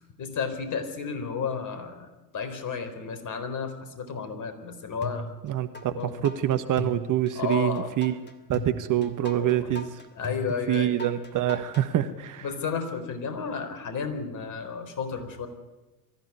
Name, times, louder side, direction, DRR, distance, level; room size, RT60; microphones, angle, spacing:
voice 1, 0.2-2.1 2.3-5.3 5.9-6.1 7.3-7.9 9.4-9.7 10.2-10.9 12.4-15.5, left 5 dB, 40° left, 8 dB, 4.2 m, -32 dB
sound 1, 5.0-5.9 6.2-11.9, left 3 dB, 20° left, 2.7 m, -38 dB
voice 2, 5.4-8.2 8.5-10.0 10.7-12.4, right 12 dB, 40° right, 10 dB, 1.5 m, -26 dB
23.5 x 14.5 x 9.8 m, 1.1 s
figure-of-eight pair, 70°, 48 cm